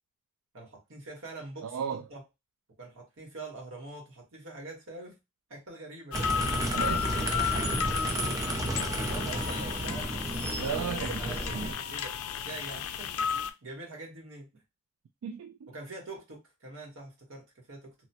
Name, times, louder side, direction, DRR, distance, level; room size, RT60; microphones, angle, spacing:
voice 1, 0.5-2.2 2.8-5.2 5.5-6.6 9.0-10.1 10.5-14.6 15.7-17.9, right 2 dB, 60° right, 1.2 m, -45 dB
voice 2, 1.6-2.0 6.7-7.7 10.6-11.8 15.2-15.7, right 7 dB, 80° right, 0.3 m, -36 dB
sound 1, 6.1-13.5, left 8 dB, 80° left, 0.4 m, -33 dB
sound 2, 6.1-11.7, right 1 dB, 15° right, 0.4 m, -32 dB
2.9 x 2.1 x 2.7 m
head